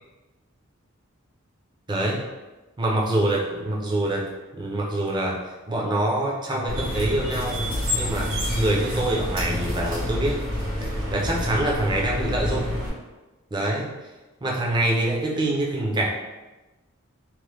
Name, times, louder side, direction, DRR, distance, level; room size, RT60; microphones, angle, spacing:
voice 1, 1.9-2.2 2.8-5.4 5.7-7.7 7.9-10.4 10.8-12.7 13.5-13.9 14.4-16.1, right 1 dB, 20° right, -2 dB, 0.4 m, -25 dB
sound 1, 6.7-12.9, left 1 dB, 85° right, 1.3 m, -28 dB
3.0 x 2.1 x 3.3 m, 1.1 s
head